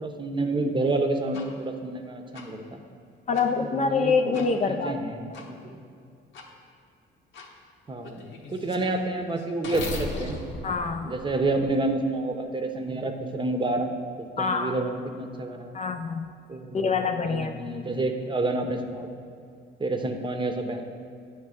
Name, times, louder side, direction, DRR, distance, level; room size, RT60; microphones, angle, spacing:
voice 1, 0.0-2.8 3.7-5.8 7.9-8.2 8.5-10.5 11.0-13.9 14.4-15.7 16.5-16.9 17.2-19.2 19.8-20.8, right 2 dB, 25° right, 4 dB, 0.7 m, -29 dB
sound 1, 1.3-1.5 2.3-2.4 3.3-3.5 4.3-4.5 5.3-5.5 6.3-6.5 7.3-7.5 8.0-11.9, left 2 dB, 75° left, 1.0 m, -38 dB
voice 2, 3.3-5.0 5.3-5.4 10.6-11.1 14.4-14.8 15.7-16.3 16.7-17.5, left 5 dB, 35° left, 6 dB, 0.4 m, -25 dB
9.2 x 3.2 x 6.4 m, 2.3 s
cardioid pair, 90°, 20 cm